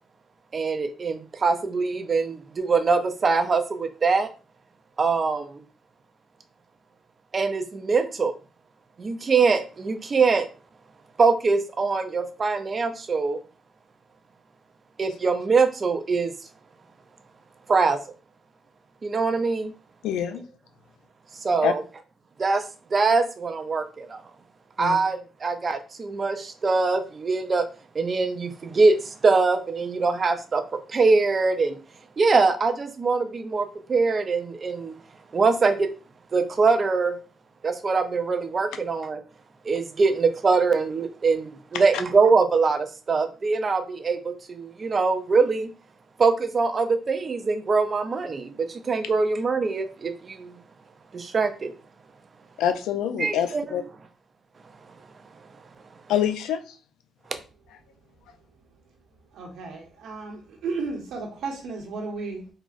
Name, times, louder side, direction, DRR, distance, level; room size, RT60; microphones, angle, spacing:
voice 1, 0.5-4.3 5.0-5.6 7.3-8.3 9.0-10.5 11.2-13.4 15.0-16.3 17.7-18.0 19.0-19.7 21.4-21.8 22.4-22.6 22.9-24.2 24.8-27.7 27.9-31.8 32.2-34.9 35.3-35.9 36.3-37.1 37.6-39.2 39.6-45.7 46.2-50.6 51.1-51.7 53.2-53.6 57.3-57.4, right 4 dB, 40° right, 8 dB, 0.4 m, -23 dB
voice 2, 20.0-20.4 21.6-21.7 24.8-25.0 52.6-53.8 56.1-56.6, left 9 dB, 90° left, 8 dB, 0.3 m, -25 dB
voice 3, 59.3-62.5, right 4 dB, 80° right, 0 dB, 1.0 m, -34 dB
3.7 x 2.0 x 2.4 m, 0.35 s
cardioid pair, 90°, 0 cm